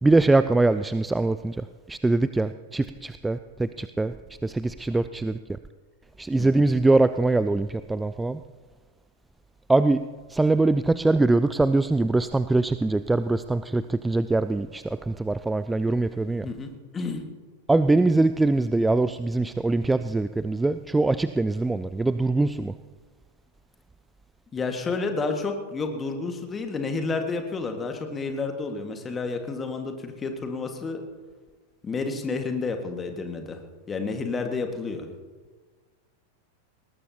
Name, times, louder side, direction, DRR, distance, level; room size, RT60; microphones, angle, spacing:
voice 1, 0.0-4.1 4.4-5.4 6.2-8.4 9.7-10.0 10.3-16.5 17.7-22.7, right 2 dB, 10° right, 13 dB, 0.3 m, -23 dB
voice 2, 16.3-17.2 24.5-31.0 31.8-33.6 33.9-35.1, left 4 dB, 20° left, 5 dB, 1.7 m, -30 dB
20.0 x 18.5 x 2.9 m, 1.4 s
figure-of-eight pair, 90°, 0 cm